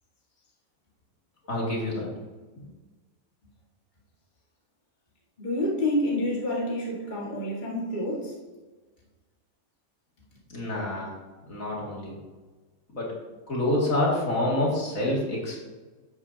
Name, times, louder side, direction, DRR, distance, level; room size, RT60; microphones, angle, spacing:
voice 1, 1.5-2.1 10.5-11.1 11.5-12.2 12.9-13.2 13.5-15.6, left 1 dB, 65° left, -4 dB, 2.9 m, -27 dB
voice 2, 5.4-8.4, left 1 dB, 30° left, -5 dB, 2.0 m, -28 dB
11.5 x 8.8 x 2.8 m, 1.3 s
omnidirectional pair, 1.5 m